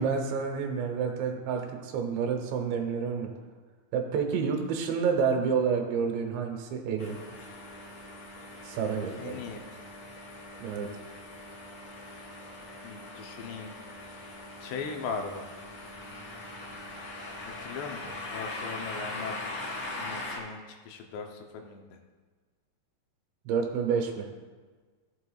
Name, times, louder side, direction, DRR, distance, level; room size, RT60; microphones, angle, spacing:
voice 1, 0.0-3.3 3.9-7.2 8.6-9.4 10.6-10.9 23.5-24.3, right 6 dB, 80° right, 3 dB, 3.3 m, -29 dB
sound 1, 7.0-20.4, left 2 dB, 55° left, 2.6 m, -41 dB
voice 2, 9.2-9.7 12.8-13.7 14.6-15.5 17.4-22.0, left 5 dB, 80° left, 3 dB, 2.8 m, -39 dB
14.5 x 7.9 x 2.4 m, 1.4 s
omnidirectional pair, 5.1 m